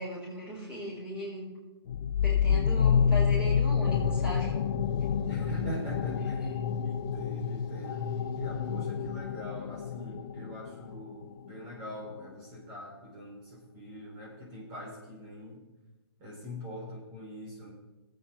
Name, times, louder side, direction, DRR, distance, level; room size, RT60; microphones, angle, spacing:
voice 1, 0.0-1.5 2.2-4.6 16.2-16.3, equal, 10° right, -6 dB, 4.6 m, -38 dB
sound 1, 1.9-11.2, left 7 dB, 50° left, 0.6 m, -29 dB
sound 2, 3.9-9.2, left 5 dB, 25° left, 2.6 m, -37 dB
voice 2, 5.2-6.5 6.8-8.0 8.4-15.6 16.2-17.7, equal, 30° right, -4 dB, 3.9 m, -42 dB
18.5 x 8.8 x 3.4 m, 1.1 s
hypercardioid pair, 155°, 14 cm